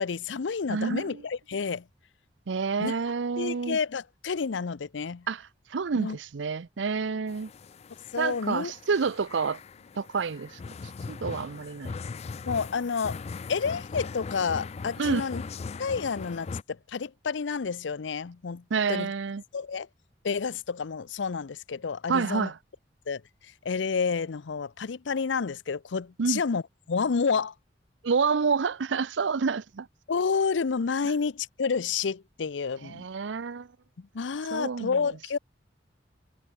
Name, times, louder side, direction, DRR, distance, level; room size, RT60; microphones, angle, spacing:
voice 1, 0.0-1.8 2.8-3.0 3.4-5.2 5.9-6.2 8.1-8.7 12.5-13.2 13.5-15.4 15.8-16.5 16.9-18.6 18.9-19.1 19.5-19.9 20.2-22.5 23.1-23.2 23.6-26.6 26.9-27.5 30.1-33.0 34.1-35.4, left 5 dB, 80° left, 0.6 m, -29 dB
voice 2, 0.7-1.2 2.5-3.8 5.3-7.5 8.2-9.6 10.0-10.6 11.1-11.9 15.0-15.2 18.7-19.4 22.1-22.6 26.2-26.4 28.0-29.9 32.8-33.7 34.5-35.0, right 5 dB, 85° right, 0.6 m, -28 dB
sound 1, 7.3-16.6, left 4 dB, 35° left, 0.4 m, -39 dB
head